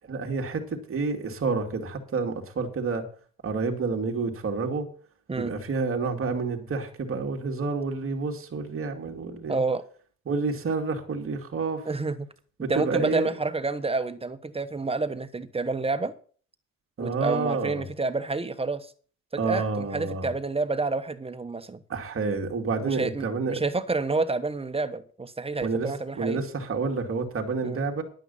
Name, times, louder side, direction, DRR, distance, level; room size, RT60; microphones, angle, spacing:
voice 1, 0.1-3.0 3.4-4.9 5.4-9.6 10.3-11.8 12.6-13.3 17.0-17.8 19.4-20.3 21.9-23.6 25.6-28.0, right 4 dB, 45° right, 2 dB, 2.6 m, -29 dB
voice 2, 9.5-9.8 11.8-12.3 12.7-16.1 17.0-18.9 19.3-21.8 22.8-26.4 27.6-27.8, right 3 dB, 20° right, 11 dB, 1.1 m, -29 dB
10.5 x 9.1 x 5.6 m, 0.43 s
cardioid pair, 90°, 30 cm